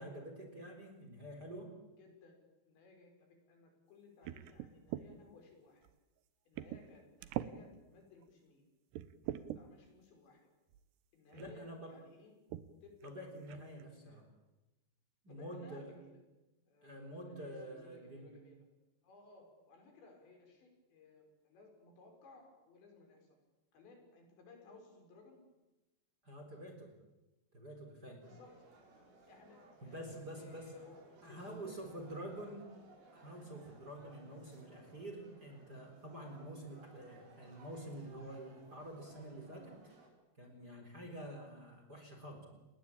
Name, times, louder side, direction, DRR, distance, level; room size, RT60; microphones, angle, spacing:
voice 1, 0.0-1.7 11.3-11.9 13.0-14.3 15.2-15.9 16.8-18.3 26.2-26.9 27.5-28.2 29.8-30.7 31.2-32.6 33.1-39.8 40.4-42.4, right 1 dB, 20° right, 4 dB, 4.1 m, -48 dB
voice 2, 2.0-2.4 2.7-5.9 6.5-8.6 9.4-10.5 11.1-12.3 12.8-13.1 13.5-14.3 15.3-16.2 16.7-18.7 19.0-23.3 23.7-25.4 28.2-28.7 29.3-32.5, left 3 dB, 70° left, 3 dB, 7.6 m, -60 dB
sound 1, 4.2-5.1 5.8-5.9 6.6-6.9 7.2-7.5 8.2-8.3 8.9-9.6 10.7-10.8 11.3-11.6 12.5-12.7 13.0-13.1 13.5-13.8, right 13 dB, 75° right, 2.9 m, -42 dB
sound 2, 28.2-40.1, right 2 dB, 55° right, 6.8 m, -61 dB
30.0 x 20.0 x 8.8 m, 1.0 s
omnidirectional pair, 5.3 m